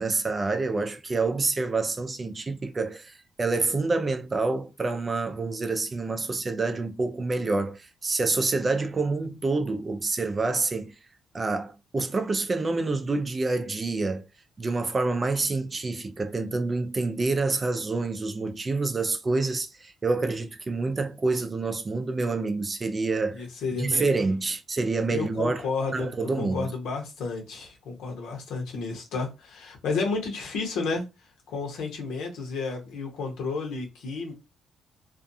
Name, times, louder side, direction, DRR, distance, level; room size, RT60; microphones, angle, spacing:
voice 1, 0.0-10.9 11.3-14.3 14.6-23.5 23.8-25.7 25.9-26.7, right 3 dB, 30° right, 0.4 m, -27 dB
voice 2, 23.3-24.2 25.1-31.1 31.5-34.3, left 4 dB, 85° left, 0.9 m, -32 dB
2.5 x 2.3 x 2.6 m
cardioid pair, 90°, 0 cm